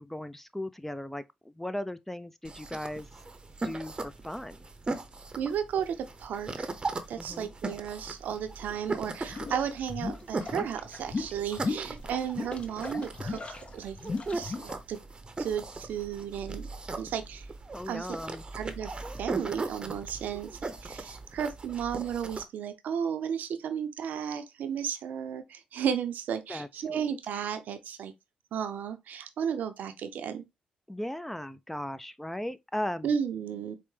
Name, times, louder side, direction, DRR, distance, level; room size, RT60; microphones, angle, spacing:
voice 1, 0.0-3.1 3.6-4.7 7.2-7.5 17.7-18.4 26.5-27.1 30.9-33.1, left 1 dB, 10° left, 0.3 m, -37 dB
sound 1, 2.4-22.4, right 3 dB, 30° right, 0.7 m, -39 dB
voice 2, 5.4-6.7 7.1-14.0 14.3-15.0 15.4-16.6 17.0-17.5 17.9-18.2 18.5-18.9 19.2-28.1 28.5-30.4 33.0-33.7, right 8 dB, 70° right, 0.5 m, -34 dB
sound 2, 9.3-14.7, left 4 dB, 40° left, 0.7 m, -36 dB
4.4 x 2.1 x 3.2 m
supercardioid pair, 55°, 3 cm